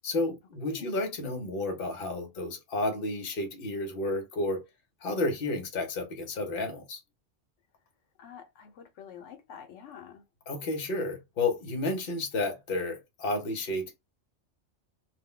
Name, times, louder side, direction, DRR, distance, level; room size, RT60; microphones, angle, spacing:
voice 1, 0.0-4.6 5.0-7.0 10.5-14.0, left 2 dB, 55° left, 1.0 m, -31 dB
voice 2, 8.2-10.2, left 8 dB, 85° left, 1.0 m, -47 dB
2.5 x 2.1 x 3.6 m
omnidirectional pair, 1.2 m